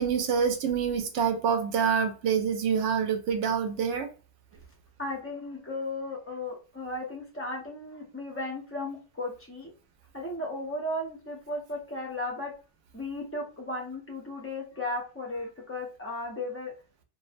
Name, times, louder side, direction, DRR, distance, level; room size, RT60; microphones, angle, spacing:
voice 1, 0.0-4.1, right 7 dB, 80° right, 0.9 m, -26 dB
voice 2, 5.0-9.7 10.1-12.5 12.9-16.7, left 2 dB, 20° left, 0.3 m, -35 dB
2.5 x 2.0 x 2.5 m
omnidirectional pair, 1.2 m